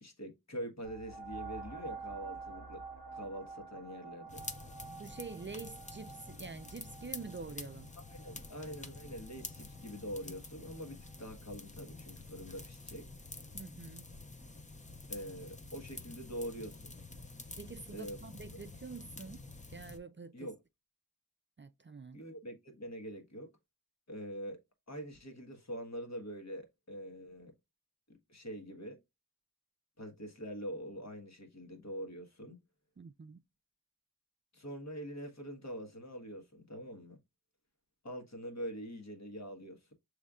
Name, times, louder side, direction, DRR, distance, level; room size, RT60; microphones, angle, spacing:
voice 1, 0.0-2.8 3.1-4.5 8.1-13.1 15.1-17.0 17.9-18.2 20.3-20.6 22.1-23.5 24.1-24.6 24.9-27.5 28.1-29.0 30.0-32.6 34.5-37.2 38.0-39.9, equal, 55° left, 1.4 m, -44 dB
sound 1, 0.8-10.1 10.7-10.8, right 4 dB, 70° left, 1.9 m, -49 dB
sound 2, 4.3-20.0, left 2 dB, 20° left, 0.6 m, -48 dB
voice 2, 5.0-7.9 13.5-14.1 17.6-19.4 19.7-20.5 21.6-22.2 33.0-33.4, right 4 dB, 35° right, 0.4 m, -47 dB
6.6 x 3.2 x 2.4 m
wide cardioid pair, 50°, 33 cm